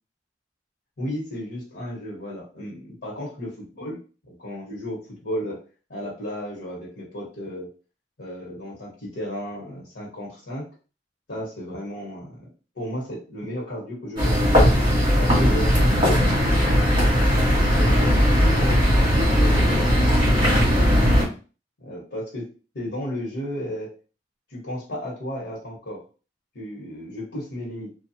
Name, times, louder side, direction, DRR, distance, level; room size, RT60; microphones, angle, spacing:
voice 1, 1.0-4.0 4.4-5.6 5.9-7.7 8.2-10.6 11.3-12.4 12.7-14.9 15.2-16.8 17.7-18.9 19.1-19.9 20.3-21.4 21.8-22.5 22.7-23.9 24.5-26.0 26.5-27.9, equal, 90° left, -6 dB, 1.0 m, -33 dB
sound 1, 14.2-21.2, equal, 30° right, 1.5 m, -18 dB
2.7 x 2.3 x 2.7 m, 0.36 s
head